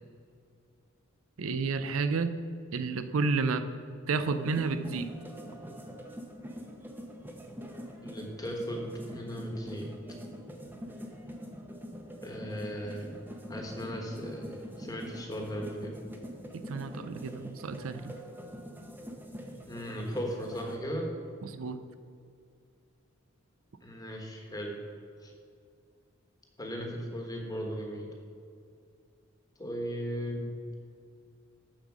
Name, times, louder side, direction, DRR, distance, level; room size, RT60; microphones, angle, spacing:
voice 1, 1.4-2.4 2.7-3.7 4.1-5.1 16.5-18.1 21.4-21.8, right 4 dB, 75° right, 10 dB, 0.5 m, -31 dB
sound 1, 4.2-20.8, equal, 10° right, 0.8 m, -44 dB
voice 2, 8.0-9.9 12.2-13.1 13.5-15.9 19.7-21.1 23.8-24.8 25.2-25.3 26.6-28.1 29.6-30.6, equal, 15° left, 1 dB, 1.3 m, -37 dB
7.3 x 7.2 x 6.2 m, 2.4 s
head